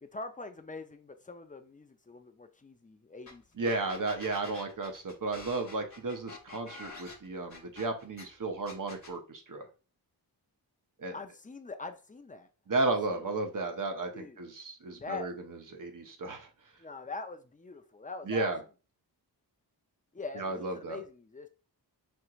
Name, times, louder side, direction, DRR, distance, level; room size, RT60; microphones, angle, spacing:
voice 1, 0.0-3.7 11.1-12.5 13.1-13.2 14.1-14.4 15.0-15.3 16.8-18.5 20.1-21.5, left 3 dB, 20° left, 0.5 m, -43 dB
sound 1, 3.3-3.4 3.6-8.2 8.7-9.2, left 3 dB, 45° left, 1.0 m, -47 dB
voice 2, 3.6-9.7 11.0-11.1 12.7-16.5 18.3-18.6 20.4-21.0, right 3 dB, 50° right, 0.8 m, -33 dB
4.4 x 2.8 x 2.4 m
wide cardioid pair, 60°, 41 cm